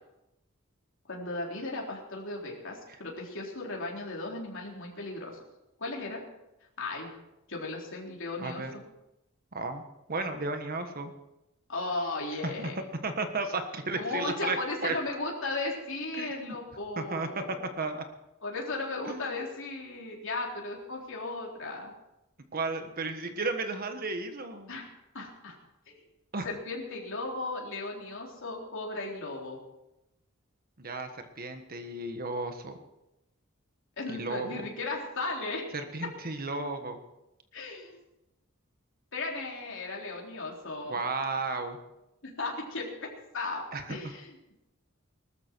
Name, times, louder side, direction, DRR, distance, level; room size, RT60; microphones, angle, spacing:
voice 1, 1.1-5.4 5.8-6.2 6.8-7.1 7.5-8.6 11.7-12.8 13.9-17.6 18.4-21.9 24.7-24.8 25.1-25.6 25.9-26.0 26.4-29.6 34.0-35.6 37.5-38.0 39.1-41.0 42.2-42.9 43.3-43.6 43.9-44.3, left 2 dB, 65° left, -1 dB, 3.8 m, -36 dB
voice 2, 8.4-8.7 9.5-9.8 10.1-11.1 12.4-14.6 14.8-14.9 16.1-16.6 17.0-18.0 19.0-19.3 22.5-24.7 26.3-26.5 30.8-32.8 34.1-34.6 35.7-37.0 40.8-41.8 43.7-44.1, right 3 dB, 45° right, 7 dB, 1.4 m, -34 dB
20.0 x 13.5 x 4.6 m, 0.91 s
head